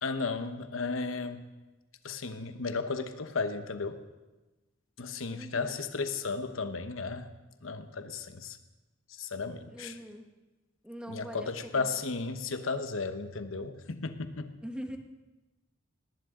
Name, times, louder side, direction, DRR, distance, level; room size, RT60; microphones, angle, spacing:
voice 1, 0.0-1.4 2.0-4.0 5.0-7.3 7.6-8.6 9.1-10.0 11.1-14.5, left 4 dB, 85° left, 9 dB, 1.0 m, -34 dB
voice 2, 5.3-5.8 9.7-10.3 10.8-11.5 11.7-11.9 14.6-15.0, equal, 5° right, 4 dB, 1.2 m, -42 dB
19.0 x 18.0 x 3.8 m, 1.1 s
head